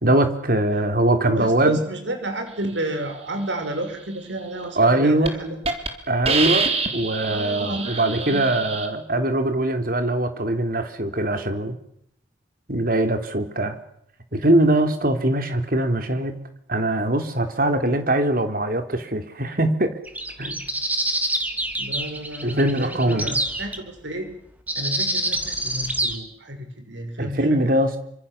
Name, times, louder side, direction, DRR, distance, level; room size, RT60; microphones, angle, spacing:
voice 1, 0.0-1.8 4.8-5.3 6.1-6.7 6.9-11.8 12.7-13.8 14.3-16.3 16.7-19.9 20.4-20.6 22.4-23.3 27.2-28.0, right 1 dB, 50° right, 7 dB, 3.5 m, -21 dB
voice 2, 1.3-5.6 7.3-8.7 21.8-24.3 24.8-27.7, right 1 dB, 75° right, 6 dB, 5.8 m, -31 dB
Hiss, 4.7-4.9 5.2-5.3 5.6-5.9 6.2-8.9, right 4 dB, 35° right, 3.6 m, -25 dB
sound 1, 20.1-23.8 24.7-26.2, right 1 dB, 10° right, 2.8 m, -26 dB
28.0 x 25.5 x 7.4 m, 0.72 s
head